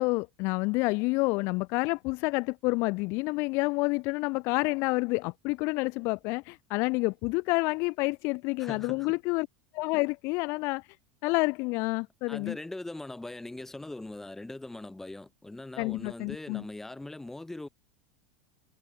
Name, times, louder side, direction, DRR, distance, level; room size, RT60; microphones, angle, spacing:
voice 1, 0.0-9.5 9.7-10.9 11.2-12.6 15.8-16.6, left 26 dB, 55° left, 0.6 m, -29 dB
voice 2, 8.6-9.2 12.3-17.7, left 2 dB, 5° left, 2.2 m, -41 dB
supercardioid pair, 125°, 5 cm